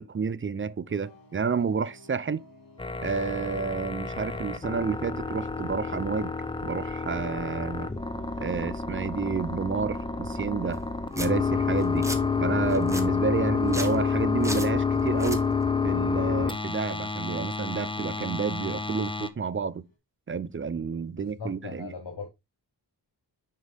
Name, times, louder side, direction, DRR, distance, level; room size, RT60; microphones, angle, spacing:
voice 1, 0.0-2.4 3.0-6.3 6.6-7.9 8.4-10.9 11.2-12.1 12.4-15.5 15.8-19.8 20.3-21.9, right 5 dB, 30° right, 0.5 m, -30 dB
sound 1, 0.9-20.0, left 3 dB, 55° left, 2.7 m, -53 dB
sound 2, 2.8-19.3, left 5 dB, 15° left, 0.7 m, -29 dB
Domestic sounds home sounds, 10.7-10.8 11.1-11.3 11.8-12.2 12.7-13.0 13.6-14.0 14.4-14.7 15.1-15.4, right 1 dB, 5° right, 1.1 m, -34 dB
voice 2, 21.2-22.3, left 4 dB, 80° left, 1.3 m, -39 dB
6.5 x 5.4 x 3.5 m
wide cardioid pair, 105°, 40 cm